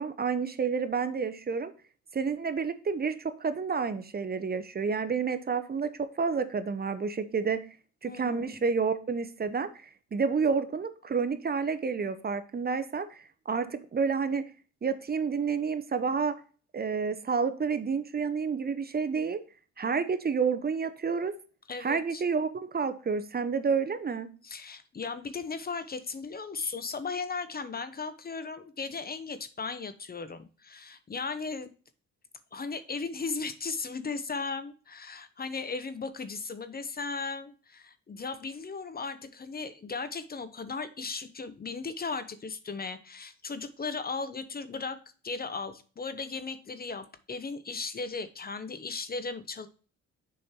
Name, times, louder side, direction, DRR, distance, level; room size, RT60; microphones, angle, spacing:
voice 1, 0.0-1.7 2.1-7.6 8.0-14.4 14.8-16.4 16.7-19.4 19.8-21.3 21.8-24.3, right 5 dB, 30° right, 11 dB, 0.8 m, -29 dB
voice 2, 8.0-8.6 21.7-22.2 24.4-31.7 32.5-45.0 45.2-49.7, left 4 dB, 30° left, 12 dB, 0.9 m, -36 dB
6.8 x 5.3 x 4.4 m, 0.38 s
cardioid pair, 90°, 30 cm